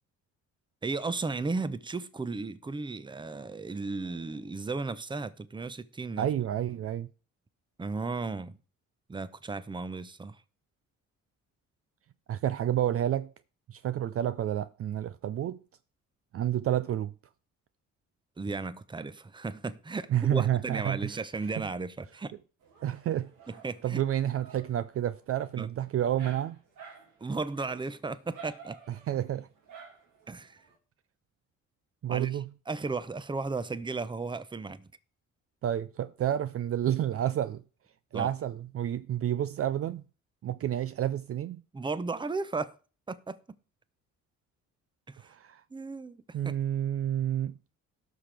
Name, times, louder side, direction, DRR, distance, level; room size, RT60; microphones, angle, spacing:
voice 1, 0.8-6.3 7.8-8.6 9.1-10.4 18.4-22.3 23.5-24.0 25.6-25.7 27.2-28.8 30.3-30.6 32.1-32.4 32.7-34.9 38.1-38.3 41.7-42.7 43.1-43.4 45.1-45.3 45.7-46.6, right 3 dB, 15° right, 0.7 m, -35 dB
voice 2, 6.2-7.1 12.3-13.3 13.7-15.6 16.3-17.1 20.1-21.1 21.6-21.7 22.8-23.3 23.8-26.6 28.9-29.5 32.0-32.5 35.6-37.6 38.1-40.0 40.4-41.6 45.3-45.6 46.3-47.8, right 11 dB, 50° right, 0.4 m, -30 dB
Dog, 22.6-30.8, right 6 dB, 80° right, 2.4 m, -53 dB
17.5 x 5.9 x 3.4 m
cardioid pair, 90°, 30 cm